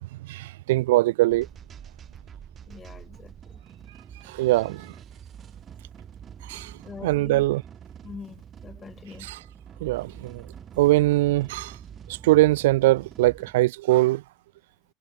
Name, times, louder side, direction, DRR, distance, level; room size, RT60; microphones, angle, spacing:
voice 1, 0.2-1.5 4.3-4.9 6.5-6.7 7.0-7.6 9.2-9.4 9.8-10.4 10.8-11.8 12.1-14.2, right 18 dB, 70° right, 0.4 m, -22 dB
sound 1, 1.3-13.5, right 8 dB, 35° right, 4.3 m, -45 dB
voice 2, 2.7-3.6 6.8-7.5 8.0-9.3, left 5 dB, 25° left, 2.8 m, -43 dB
hypercardioid pair, 80°, 0 cm